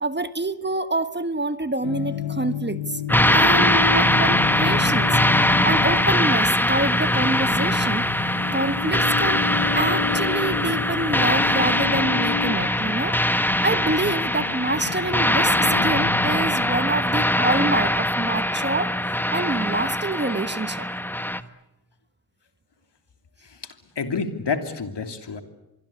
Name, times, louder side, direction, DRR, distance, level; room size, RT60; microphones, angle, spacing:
voice 1, 0.0-3.0 3.3-8.0 8.5-9.5 9.7-13.2 13.6-20.9, right 2 dB, 20° right, 12 dB, 1.4 m, -27 dB
sound 1, 1.8-17.0, left 8 dB, 85° left, 1.4 m, -31 dB
sound 2, 3.1-21.4, left 1 dB, 5° left, 1.3 m, -22 dB
voice 2, 23.4-25.4, left 5 dB, 60° left, 7 dB, 3.0 m, -29 dB
25.5 x 22.0 x 8.6 m, 0.97 s
supercardioid pair, 45°, 46 cm